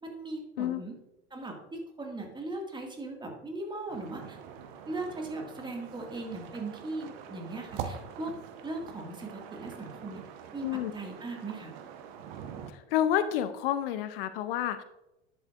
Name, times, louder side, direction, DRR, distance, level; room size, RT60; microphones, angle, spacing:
voice 1, 0.0-1.0 1.3-4.4 4.9-8.3 8.6-10.2 10.5-11.7, right 2 dB, 15° right, 1 dB, 2.0 m, -39 dB
sound 1, 3.9-12.7, right 7 dB, 55° right, 1.1 m, -44 dB
voice 2, 10.6-10.9 12.7-14.8, left 10 dB, 60° left, 12 dB, 0.6 m, -29 dB
10.5 x 7.8 x 2.5 m, 0.92 s
hypercardioid pair, 80°, 31 cm